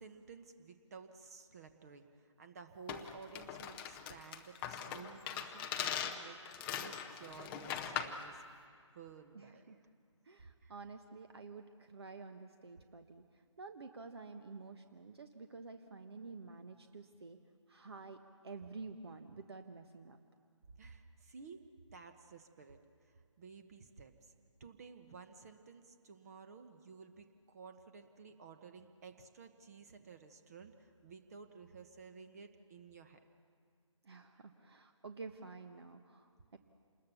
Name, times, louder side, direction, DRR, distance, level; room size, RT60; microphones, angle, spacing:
voice 1, 0.0-8.5 8.9-9.8 10.6-10.7 19.3-19.4 20.8-21.7 21.9-24.3 24.6-33.3 34.4-34.5, right 5 dB, 30° right, 7 dB, 1.2 m, -54 dB
sound 1, 2.9-8.2, left 8 dB, 10° left, 0.6 m, -41 dB
voice 2, 9.3-9.8 10.2-13.2 13.6-17.4 17.7-20.2 34.0-36.6, right 4 dB, 55° right, 6 dB, 1.3 m, -50 dB
27.5 x 20.5 x 7.0 m, 2.2 s
figure-of-eight pair, 155°, 16 cm